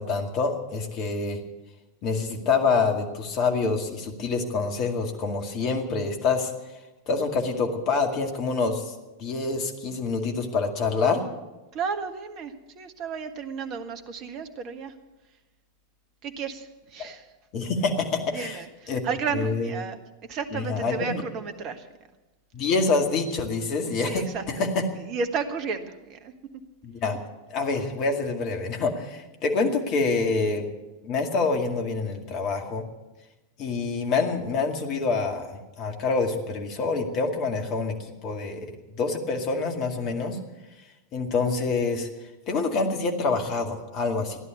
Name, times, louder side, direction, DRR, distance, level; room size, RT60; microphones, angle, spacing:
voice 1, 0.0-1.4 2.0-6.5 7.1-8.9 9.2-11.2 17.5-18.6 18.9-19.0 19.3-19.7 20.5-21.2 22.5-24.8 26.8-27.2 27.5-30.7 31.0-32.8 33.6-38.7 39.0-40.4 41.1-42.1 42.5-44.4, left 4 dB, 40° left, 3 dB, 2.1 m, -26 dB
voice 2, 11.7-14.9 16.2-17.2 18.3-20.0 20.3-21.9 24.1-24.6 25.1-26.3, right 5 dB, 40° right, 8 dB, 1.4 m, -33 dB
15.0 x 11.0 x 8.3 m, 1.1 s
figure-of-eight pair, 90°, 0 cm